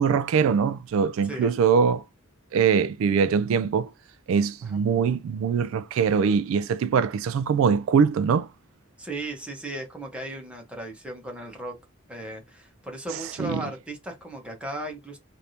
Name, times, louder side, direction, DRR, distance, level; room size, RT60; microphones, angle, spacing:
voice 1, 0.0-2.0 2.5-3.9 4.3-8.5 13.4-13.6, right 6 dB, 80° right, 0.3 m, -22 dB
voice 2, 9.0-11.8 12.1-15.2, right 1 dB, 5° right, 1.0 m, -36 dB
3.3 x 2.6 x 2.8 m
head